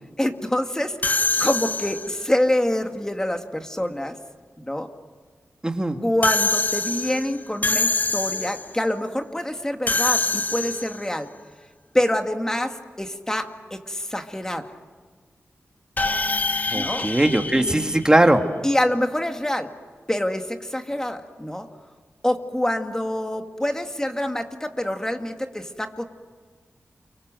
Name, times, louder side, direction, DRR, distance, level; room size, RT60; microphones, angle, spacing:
voice 1, 0.2-4.2 4.6-4.9 6.0-11.3 11.9-14.7 16.7-17.1 18.6-19.7 20.1-21.7 22.2-26.0, left 1 dB, 10° left, 5 dB, 2.1 m, -26 dB
sound 1, 1.0-2.3 6.2-8.7 9.9-11.1 16.0-18.5, left 3 dB, 35° left, 0.9 m, -25 dB
voice 2, 5.6-6.0 16.7-18.4, right 1 dB, 15° right, 5 dB, 1.9 m, -19 dB
29.5 x 24.5 x 7.7 m, 1.5 s
wide cardioid pair, 100°, 5 cm